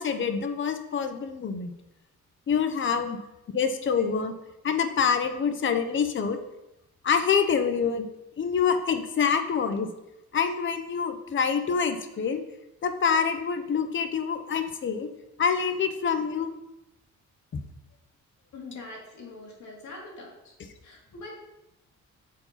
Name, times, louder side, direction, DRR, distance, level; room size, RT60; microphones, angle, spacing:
voice 1, 0.0-1.7 2.5-3.2 3.5-4.3 4.6-6.4 7.0-8.1 8.4-9.9 10.3-12.4 12.8-15.1 15.4-16.5, left 6 dB, 40° left, 8 dB, 0.7 m, -26 dB
voice 2, 18.5-20.5 20.8-21.3, left 2 dB, 70° left, -1 dB, 2.2 m, -43 dB
7.4 x 4.6 x 4.1 m, 0.91 s
cardioid pair, 90°, 30 cm